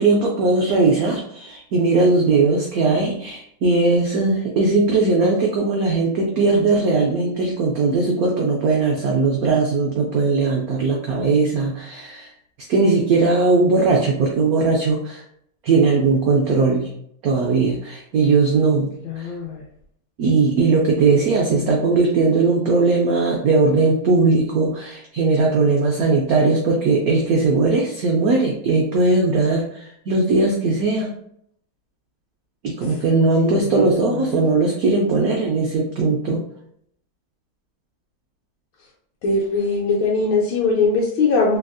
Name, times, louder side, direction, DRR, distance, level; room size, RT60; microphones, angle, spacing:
voice 1, 0.0-12.3 12.7-15.2 15.6-16.9 17.2-19.3 20.2-31.1 32.6-36.4, right 3 dB, 85° right, -1 dB, 0.8 m, -19 dB
voice 2, 19.0-19.6 21.1-21.8 32.9-33.0 33.4-34.3 39.2-41.6, left 3 dB, 80° left, -3 dB, 1.4 m, -22 dB
3.4 x 2.4 x 2.3 m, 0.70 s
omnidirectional pair, 2.1 m